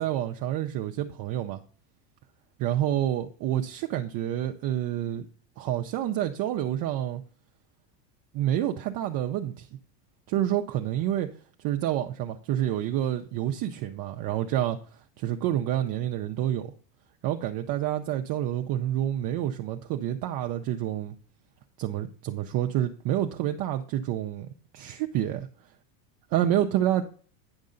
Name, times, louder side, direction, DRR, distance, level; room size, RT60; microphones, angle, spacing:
voice 1, 0.0-1.6 2.6-5.3 5.6-7.2 8.3-9.7 10.3-11.3 11.6-16.7 17.2-21.2 21.8-24.5 24.7-25.4 26.3-27.0, right 12 dB, 40° right, 0.7 m, -28 dB
9.6 x 5.3 x 3.9 m
supercardioid pair, 125°, 50 cm